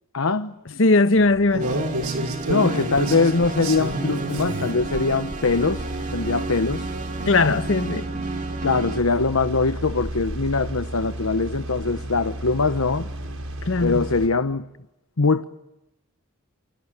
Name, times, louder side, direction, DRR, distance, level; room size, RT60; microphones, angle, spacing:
voice 1, 0.1-0.5 2.5-5.8 6.1-6.9 8.6-13.1 13.8-14.6 15.2-15.4, left 3 dB, 90° left, 1.1 m, -22 dB
voice 2, 0.8-1.7 7.3-8.1 13.7-14.1, left 3 dB, 65° left, 1.1 m, -19 dB
sound 1, 1.2-14.3, right 1 dB, 90° right, 5.9 m, -32 dB
sound 2, 1.6-9.0, right 3 dB, 35° right, 2.3 m, -31 dB
29.0 x 27.0 x 7.6 m
head